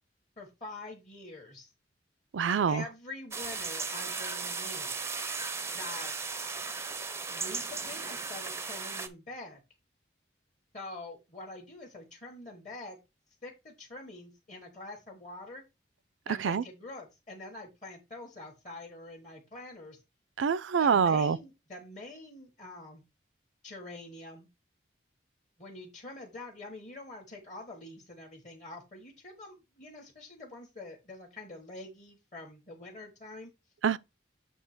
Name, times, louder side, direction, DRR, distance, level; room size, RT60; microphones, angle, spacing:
voice 1, 0.4-1.7 2.7-5.0 5.7-6.1 7.3-9.6 10.7-13.0 13.4-15.6 16.3-20.0 20.8-23.0 23.6-24.5 25.6-33.5, left 2 dB, 40° left, 1.5 m, -45 dB
voice 2, 2.3-2.8 16.4-16.6 20.4-21.4 33.8-34.0, right 6 dB, 85° right, 0.4 m, -25 dB
sound 1, 3.3-9.1, right 4 dB, 15° right, 0.5 m, -36 dB
7.8 x 2.8 x 5.9 m
head